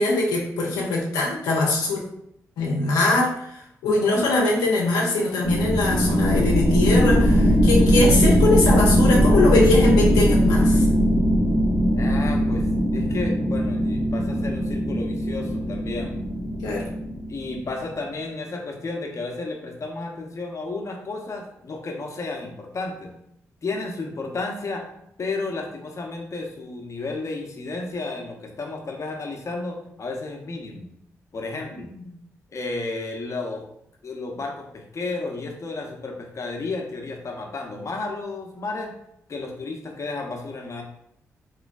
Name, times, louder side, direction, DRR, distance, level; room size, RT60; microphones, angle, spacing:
voice 1, 0.0-2.0 2.6-3.6 3.8-10.9 16.6-16.9 31.9-32.0, left 2 dB, 90° left, -3 dB, 0.5 m, -22 dB
sound 1, 5.4-17.7, equal, 80° right, 1.1 m, -20 dB
voice 2, 11.9-12.7 12.9-16.1 17.3-23.1 23.6-24.9 25.2-30.9 31.3-31.9 32.5-33.6 34.0-38.9 39.3-40.8, left 3 dB, 50° left, 2 dB, 0.7 m, -32 dB
3.1 x 3.0 x 2.4 m, 0.75 s
supercardioid pair, 45°, 7 cm